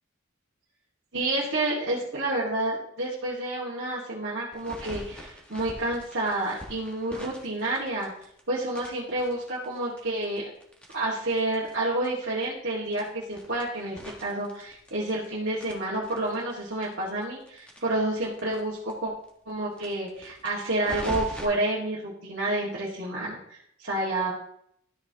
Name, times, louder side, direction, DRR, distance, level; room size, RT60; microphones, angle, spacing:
voice 1, 1.1-8.1 8.5-10.5 10.9-19.1 19.5-24.3, right 2 dB, 55° right, -8 dB, 2.1 m, -29 dB
sound 1, 4.5-8.4 8.7-11.7 12.0-12.1 12.4-12.5 12.9-15.3 15.6-18.6 18.9-19.0 19.2-19.3 19.7-21.4, equal, 5° left, 1.5 m, -42 dB
13.0 x 6.1 x 3.0 m, 0.70 s
head